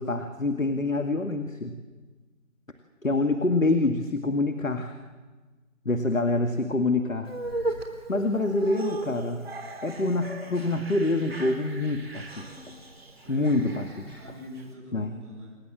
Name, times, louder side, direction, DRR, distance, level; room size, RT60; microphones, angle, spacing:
voice 1, 0.0-1.7 3.0-4.9 5.9-7.3 8.1-9.4 9.8-12.4 13.3-14.2 14.9-15.1, left 2 dB, 75° left, 6 dB, 2.2 m, -26 dB
sound 1, 7.3-14.7, right 2 dB, 45° right, 3.5 m, -37 dB
voice 2, 13.2-13.6 14.2-15.6, equal, 20° right, -5 dB, 7.1 m, -45 dB
28.0 x 21.0 x 7.6 m, 1.3 s
figure-of-eight pair, 175°, 40 cm